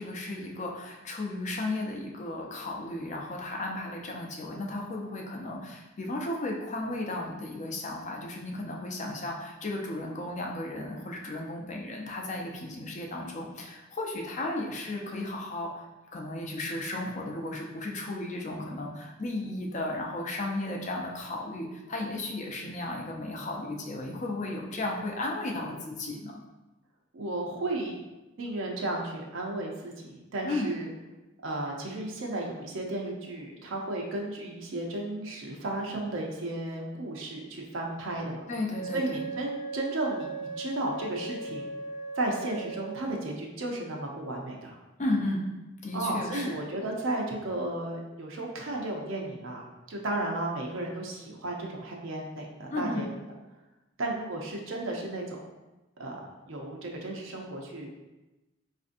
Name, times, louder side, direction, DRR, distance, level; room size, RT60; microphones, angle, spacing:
voice 1, 0.0-15.9 16.1-26.3 30.4-30.7 38.5-39.2 45.0-45.4 45.8-46.6 52.7-53.0, left 2 dB, 35° left, 0 dB, 0.5 m, -34 dB
voice 2, 27.1-28.0 28.4-30.9 31.4-38.4 38.9-40.3 40.6-41.7 42.2-44.8 45.9-53.1 54.0-55.4 56.0-57.9, right 2 dB, 70° right, 0 dB, 0.5 m, -34 dB
Wind instrument woodwind instrument, 38.7-43.3, right 4 dB, 20° left, 1.0 m, -38 dB
4.2 x 2.5 x 2.5 m, 1.1 s
head